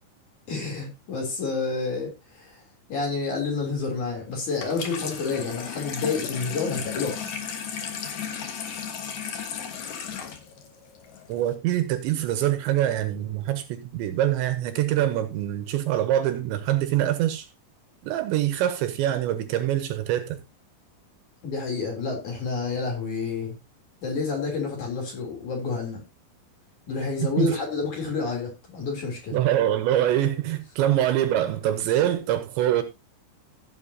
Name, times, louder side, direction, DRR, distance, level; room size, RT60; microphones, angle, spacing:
voice 1, 0.5-2.6 2.9-7.3 21.4-23.5 24.0-26.0 26.9-29.4, left 4 dB, 45° left, 4.1 m, -29 dB
Water tap faucet / Sink (filling or washing), 4.5-11.5, left 7 dB, 70° left, 1.8 m, -35 dB
voice 2, 11.3-17.5 18.0-20.4 27.4-27.5 29.3-32.8, right 12 dB, 80° right, 2.9 m, -24 dB
16.0 x 7.7 x 2.8 m
omnidirectional pair, 5.6 m